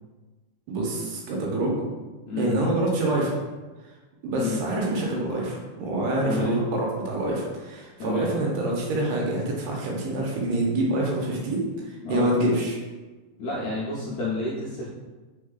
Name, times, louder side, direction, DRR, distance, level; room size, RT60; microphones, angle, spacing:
voice 1, 0.7-1.8 2.4-3.3 4.2-12.8, right 1 dB, 80° right, -2 dB, 2.3 m, -26 dB
voice 2, 2.3-2.6 4.3-4.6 6.2-6.6 8.0-8.3 12.0-12.3 13.4-14.9, left 2 dB, 80° left, -7 dB, 1.6 m, -30 dB
4.9 x 4.0 x 2.3 m, 1.2 s
omnidirectional pair, 3.9 m